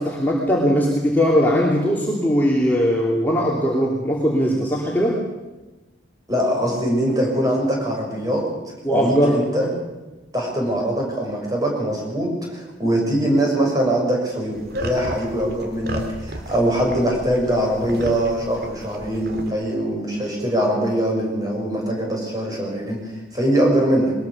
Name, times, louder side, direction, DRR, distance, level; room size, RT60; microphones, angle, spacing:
voice 1, 0.0-5.2 8.8-9.4, equal, 10° left, -4 dB, 2.9 m, -19 dB
voice 2, 6.3-8.5 8.9-9.7 10.3-23.0 23.3-24.1, right 1 dB, 20° right, -1 dB, 6.5 m, -22 dB
sound 1, 14.5-19.5, right 1 dB, 55° right, 2.6 m, -34 dB
22.0 x 20.5 x 6.7 m, 1.1 s
head